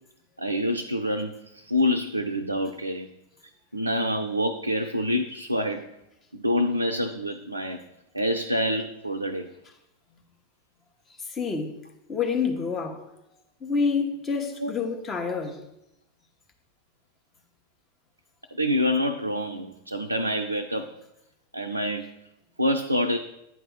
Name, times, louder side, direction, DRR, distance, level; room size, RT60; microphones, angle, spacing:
voice 1, 0.4-3.1 3.7-5.9 6.3-7.8 8.1-9.5 14.6-14.7 18.6-20.9 21.5-22.1 22.6-23.2, left 1 dB, 85° right, 0.4 m, -26 dB
voice 2, 11.3-11.8 12.1-13.0 13.6-15.6, left 5 dB, 25° left, 1.1 m, -28 dB
9.3 x 3.4 x 6.3 m
figure-of-eight pair, 90°, 0 cm